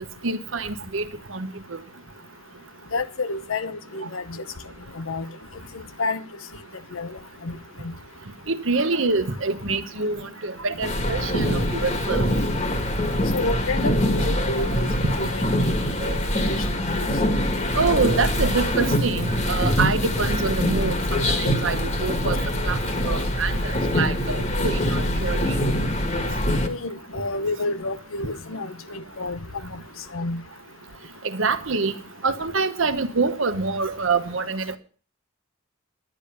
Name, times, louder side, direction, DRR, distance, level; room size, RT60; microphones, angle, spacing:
voice 1, 0.2-1.0 1.3-1.8 8.5-12.3 16.0-16.1 17.7-22.4 22.6-22.8 23.1-25.4 31.2-31.9 32.2-34.8, right 4 dB, 70° right, 1.1 m, -26 dB
voice 2, 2.9-4.4 4.9-5.3 6.0-6.2 6.9-7.6 7.8-7.9 13.3-15.7 16.0-16.2 16.5-17.1 26.6-29.4 29.7-29.8 30.1-30.4, left 3 dB, 80° left, 0.9 m, -29 dB
sound 1, 10.8-26.7, left 1 dB, 35° left, 1.5 m, -24 dB
10.5 x 10.0 x 6.8 m
head